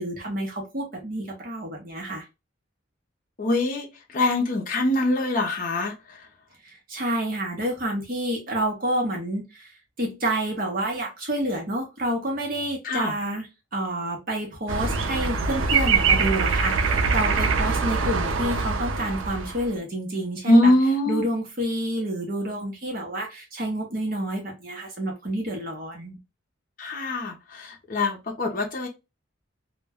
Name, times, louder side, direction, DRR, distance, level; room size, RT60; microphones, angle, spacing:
voice 1, 0.0-2.2 6.6-13.5 13.7-20.7 21.1-26.2, right 1 dB, 45° right, 0.7 m, -29 dB
voice 2, 3.4-5.9 12.8-13.1 20.5-21.3 26.8-28.9, left 1 dB, 45° left, 0.5 m, -23 dB
sound 1, 14.7-19.7, right 4 dB, 90° right, 0.5 m, -23 dB
2.1 x 2.1 x 3.4 m
head